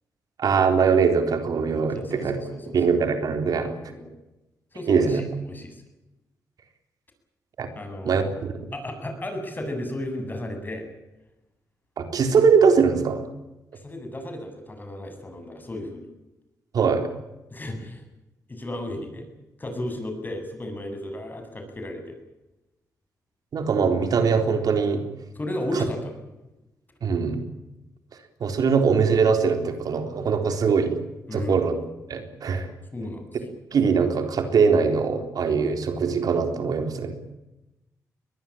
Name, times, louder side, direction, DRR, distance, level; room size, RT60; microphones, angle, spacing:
voice 1, 0.4-2.4 2.7-3.7 4.9-5.3 7.6-7.7 8.0-8.7 12.0-13.3 16.7-17.1 23.5-25.0 25.7-25.8 27.0-27.4 28.4-31.0 31.3-31.7 32.1-32.7 33.7-37.2, right 5 dB, 70° right, 6 dB, 3.8 m, -22 dB
voice 2, 1.9-2.8 3.5-4.1 4.7-5.8 7.7-8.2 8.7-10.9 13.8-16.1 17.5-18.0 18.5-19.3 19.6-22.2 25.3-26.2 31.3-31.6 32.9-33.3, left 1 dB, 30° left, 6 dB, 8.0 m, -34 dB
22.5 x 20.0 x 8.9 m, 0.98 s
cardioid pair, 80°, 7 cm